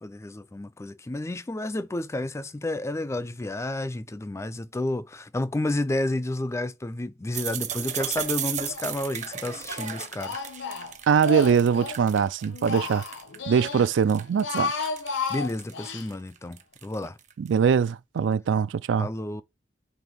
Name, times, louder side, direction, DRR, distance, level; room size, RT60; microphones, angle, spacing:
voice 1, 0.0-10.4 15.3-17.2 19.0-19.4, left 1 dB, 15° left, 0.4 m, -31 dB
sound 1, 7.3-13.4 13.7-17.6, right 9 dB, 40° right, 0.8 m, -35 dB
Speech, 8.2-8.9 9.2-12.0 12.4-13.9 14.3-16.1, left 4 dB, 85° left, 0.9 m, -33 dB
voice 2, 11.1-13.0 13.5-14.9 17.4-19.1, right 7 dB, 75° right, 0.3 m, -22 dB
6.1 x 3.4 x 5.3 m
head